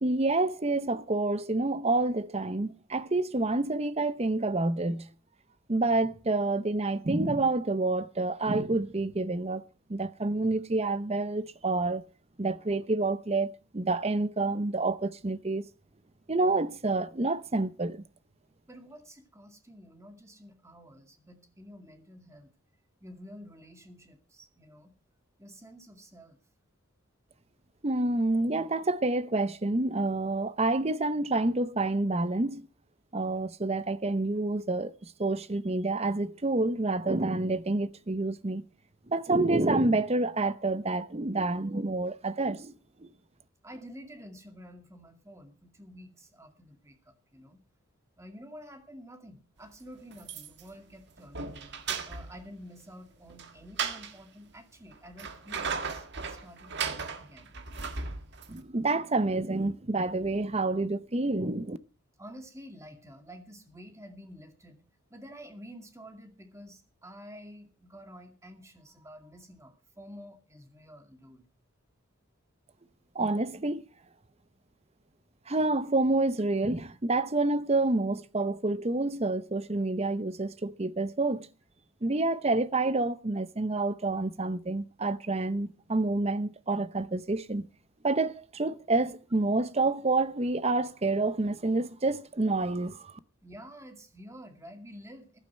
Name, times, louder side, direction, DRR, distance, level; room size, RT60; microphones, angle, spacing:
voice 1, 0.0-5.1 5.7-9.6 9.9-12.0 12.4-15.7 16.3-18.0 27.8-32.7 33.1-38.6 39.1-42.7 43.0-43.1 58.5-61.8 73.1-73.8 75.5-81.5 82.0-87.6 88.0-93.2, right 2 dB, 30° right, 0.8 m, -28 dB
voice 2, 18.7-22.5 23.0-24.9 25.4-26.4 43.6-47.6 48.2-51.6 52.0-57.6 62.2-64.8 65.1-71.4 93.4-95.4, equal, 15° right, 2.2 m, -49 dB
sound 1, 50.1-50.8 51.2-52.5 53.3-54.1 54.9-58.6, right 5 dB, 55° right, 1.7 m, -36 dB
14.5 x 12.0 x 4.4 m
head